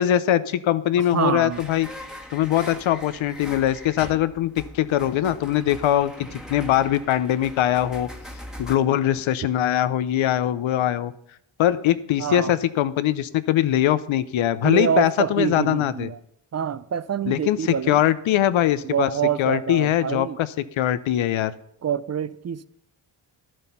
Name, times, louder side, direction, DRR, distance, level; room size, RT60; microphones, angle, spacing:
voice 1, 0.0-1.9 2.3-8.1 8.6-11.1 11.6-16.1 17.3-19.1 19.4-20.5 20.8-21.5, left 12 dB, 75° left, 15 dB, 0.8 m, -22 dB
voice 2, 1.1-1.6 12.2-12.5 14.6-16.2 16.5-18.0 18.8-20.4 21.8-22.6, right 8 dB, 35° right, 15 dB, 0.4 m, -26 dB
sound 1, 1.5-8.8, left 1 dB, ahead, 1.3 m, -41 dB
12.0 x 7.8 x 5.7 m, 0.73 s
cardioid pair, 110°, 48 cm